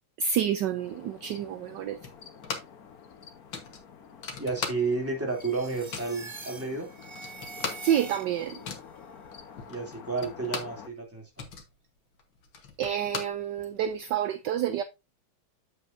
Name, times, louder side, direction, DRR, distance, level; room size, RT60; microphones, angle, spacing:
voice 1, 0.2-2.0 7.8-8.6 12.8-14.8, right 9 dB, 70° right, 1.2 m, -28 dB
sound 1, 0.8-10.9, left 6 dB, 50° left, 1.4 m, -49 dB
sound 2, 2.0-2.9 3.1-3.2 3.5-5.2 5.5-6.2 6.7-6.8 7.0-10.9 11.2-13.9, left 5 dB, 75° left, 2.2 m, -39 dB
voice 2, 4.4-6.9 9.7-11.5, right 4 dB, 5° right, 2.7 m, -31 dB
sound 3, 5.3-8.7, right 4 dB, 35° right, 0.4 m, -45 dB
8.3 x 8.0 x 2.6 m
omnidirectional pair, 2.2 m